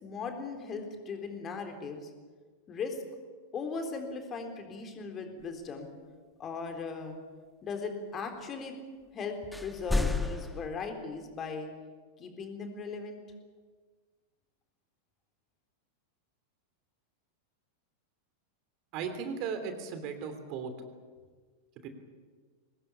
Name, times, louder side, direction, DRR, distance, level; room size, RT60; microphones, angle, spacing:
voice 1, 0.0-2.1 2.7-3.0 3.5-5.9 6.4-7.2 7.6-8.7 9.1-9.4 9.6-11.7 12.2-13.2, left 4 dB, 25° left, 5 dB, 3.8 m, -38 dB
sound 1, 9.5-10.7, left 2 dB, 5° left, 1.4 m, -30 dB
voice 2, 18.9-20.7 21.8-21.9, right 6 dB, 40° right, 8 dB, 3.0 m, -36 dB
23.5 x 19.5 x 8.6 m, 1.5 s
figure-of-eight pair, 90°, 0 cm